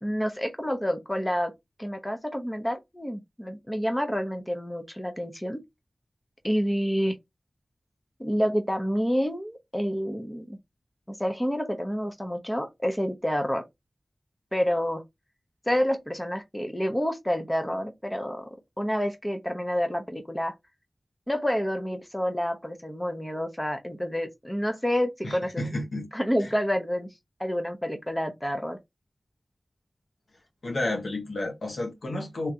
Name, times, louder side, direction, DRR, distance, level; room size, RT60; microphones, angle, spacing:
voice 1, 0.0-1.5 1.8-5.6 6.4-7.2 8.2-10.6 11.1-13.6 14.5-15.0 15.7-18.5 18.8-20.5 21.3-25.7 26.1-27.1 27.4-28.8, equal, 10° left, 0.8 m, -28 dB
voice 2, 25.2-26.1 26.4-26.5 30.6-32.5, left 2 dB, 85° left, 1.7 m, -31 dB
3.6 x 3.3 x 2.9 m
wide cardioid pair, 75°, 0 cm